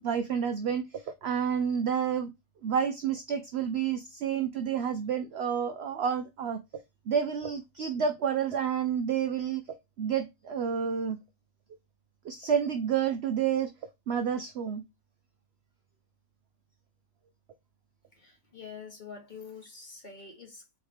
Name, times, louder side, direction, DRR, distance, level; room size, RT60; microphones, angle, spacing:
voice 1, 0.0-2.3 2.6-6.6 7.1-9.6 10.0-11.2 12.2-13.7 14.1-14.8, right 7 dB, 65° right, 0.6 m, -29 dB
voice 2, 18.1-20.8, left 5 dB, 35° left, 1.1 m, -46 dB
4.5 x 3.1 x 3.3 m
omnidirectional pair, 1.6 m